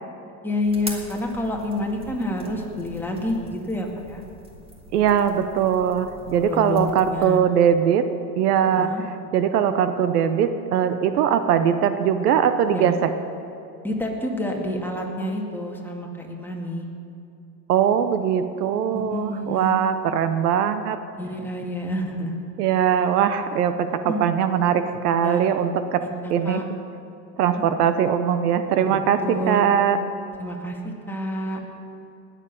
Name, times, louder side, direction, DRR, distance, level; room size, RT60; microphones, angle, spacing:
voice 1, 0.4-4.2 6.5-7.4 8.8-9.0 12.7-12.9 13.8-16.9 18.9-19.7 21.2-22.4 24.1-24.2 25.2-25.5 26.0-26.6 29.2-29.7 30.4-31.6, left 1 dB, 5° left, -1 dB, 2.1 m, -28 dB
sound 1, 0.6-7.4, right 1 dB, 10° right, 2.1 m, -42 dB
voice 2, 4.9-8.1 8.4-13.1 17.7-21.0 22.6-26.0 26.3-26.6 27.4-29.2 29.5-30.0, right 8 dB, 65° right, 10 dB, 0.9 m, -21 dB
19.0 x 7.4 x 6.9 m, 2.7 s
hypercardioid pair, 100°, 49 cm